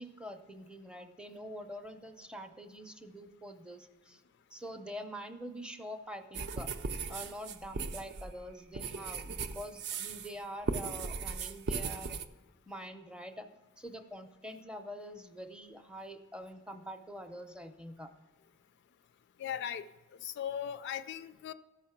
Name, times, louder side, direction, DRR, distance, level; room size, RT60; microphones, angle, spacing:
voice 1, 0.0-4.2 4.5-6.7 7.1-12.2 12.7-13.5 13.8-18.1, equal, 5° right, 7 dB, 0.5 m, -45 dB
sound 1, 6.3-10.3 10.6-12.2, right 4 dB, 55° right, 0.5 m, -37 dB
voice 2, 19.4-19.8 20.2-21.5, left 9 dB, 55° left, 12 dB, 0.3 m, -38 dB
13.0 x 5.6 x 5.8 m, 1.2 s
head